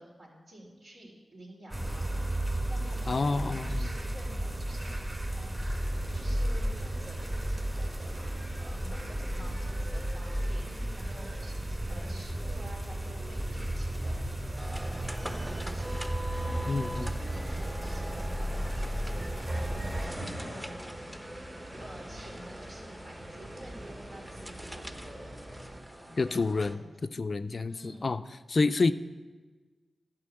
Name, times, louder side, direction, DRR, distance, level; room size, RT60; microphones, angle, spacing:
voice 1, 0.0-5.6 6.1-14.2 14.7-20.9 21.8-25.6 25.9-27.1 27.7-28.1, right 1 dB, 75° right, -4 dB, 3.6 m, -50 dB
sound 1, 1.7-20.1, right 1 dB, 35° right, 1.9 m, -33 dB
voice 2, 3.1-3.9 16.7-17.1 26.2-26.8 27.2-28.2 28.5-28.9, left 3 dB, 55° left, 11 dB, 0.4 m, -28 dB
sound 2, 5.8-25.8, right 1 dB, 55° right, 3.3 m, -45 dB
sound 3, 14.6-26.7, right 1 dB, 15° right, 0.8 m, -43 dB
11.5 x 4.9 x 7.8 m, 1.3 s
cardioid pair, 45°, 0 cm